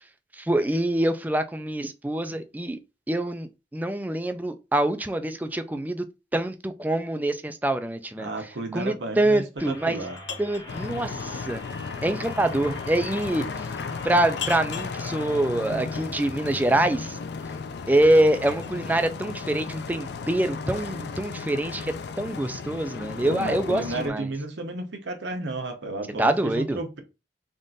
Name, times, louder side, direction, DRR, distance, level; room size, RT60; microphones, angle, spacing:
voice 1, 0.4-2.8 3.1-6.1 6.3-8.3 8.7-10.0 10.4-11.6 12.0-13.5 14.0-17.2 17.9-21.9 22.2-24.3 26.2-26.8, right 1 dB, 10° right, 0.4 m, -25 dB
voice 2, 8.2-10.2 23.2-27.0, right 2 dB, 75° right, 0.9 m, -32 dB
sound 1, 9.6-15.5, left 1 dB, 20° left, 0.9 m, -44 dB
sound 2, 9.7-10.7 13.1-13.4 14.4-15.0 17.2-18.8, left 7 dB, 90° left, 1.1 m, -38 dB
sound 3, 10.7-24.1, left 5 dB, 65° left, 0.4 m, -35 dB
3.6 x 2.5 x 3.9 m
head